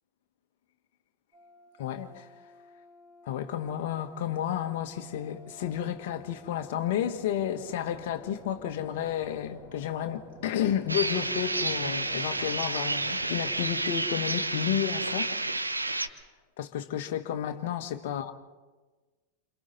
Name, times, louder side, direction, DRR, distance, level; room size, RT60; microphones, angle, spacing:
sound 1, 1.3-13.8, equal, 15° right, 4.2 m, -52 dB
voice 1, 1.8-2.3 3.3-15.3 16.6-18.3, left 10 dB, 50° left, 1.6 m, -31 dB
sound 2, 10.9-16.1, right 2 dB, 85° right, 1.1 m, -30 dB
28.5 x 28.0 x 4.2 m
figure-of-eight pair, 90°, 0 cm